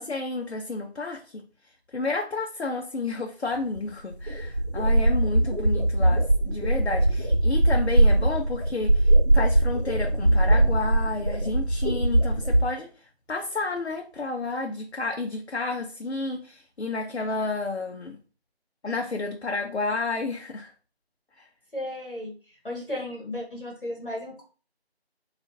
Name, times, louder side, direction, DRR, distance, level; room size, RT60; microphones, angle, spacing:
voice 1, 0.0-1.4 1.9-12.9 13.3-18.2 18.8-20.7 21.4-21.5, left 3 dB, 80° left, 2 dB, 0.7 m, -31 dB
sound 1, 3.8-3.9 4.1-12.6, right 1 dB, 40° right, 0.8 m, -21 dB
voice 2, 21.7-24.4, left 1 dB, 55° left, -2 dB, 1.4 m, -35 dB
4.4 x 2.5 x 2.5 m, 0.37 s
figure-of-eight pair, 175°, 32 cm